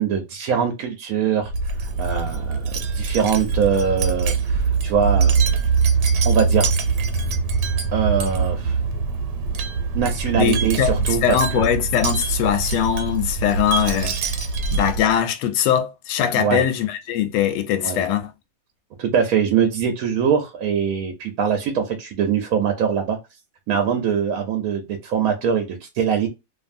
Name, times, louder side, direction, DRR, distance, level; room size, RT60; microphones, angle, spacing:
voice 1, 0.0-1.5 2.0-5.6 6.2-6.7 7.9-8.7 9.9-11.7 16.4-16.6 17.8-18.0 19.0-23.2 23.7-26.3, right 7 dB, 70° right, 0.9 m, -22 dB
Wind chime, 1.4-15.2, right 5 dB, 85° right, 1.3 m, -23 dB
voice 2, 10.4-11.0 11.2-14.4 14.7-18.3, left 10 dB, 90° left, 1.3 m, -21 dB
2.6 x 2.6 x 2.4 m
omnidirectional pair, 1.9 m